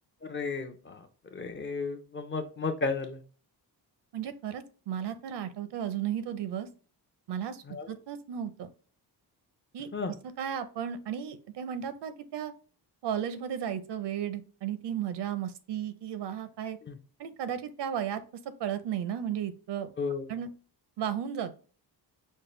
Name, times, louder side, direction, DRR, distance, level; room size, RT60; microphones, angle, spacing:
voice 1, 0.2-3.2 7.7-7.9 9.9-10.1 16.8-17.0 20.0-20.3, left 4 dB, 30° left, 6 dB, 0.5 m, -34 dB
voice 2, 4.1-6.7 7.3-8.7 9.7-9.9 10.4-12.5 13.0-16.8 17.2-18.2 18.6-19.9 20.3-20.5 21.0-21.5, right 9 dB, 75° right, 12 dB, 0.7 m, -34 dB
5.4 x 2.2 x 3.1 m, 0.38 s
wide cardioid pair, 155°, 41 cm